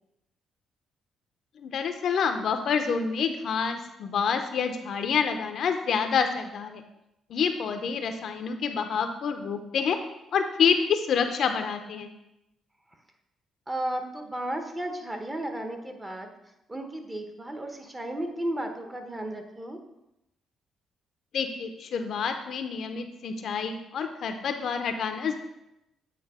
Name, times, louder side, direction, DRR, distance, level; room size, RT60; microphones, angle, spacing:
voice 1, 1.6-6.8 7.3-10.0 10.3-12.1 21.3-25.4, left 6 dB, 65° left, 7 dB, 0.6 m, -27 dB
voice 2, 13.7-16.3 16.7-19.8, right 1 dB, 20° right, 5 dB, 1.0 m, -34 dB
8.4 x 2.8 x 4.8 m, 0.89 s
cardioid pair, 90°, 0 cm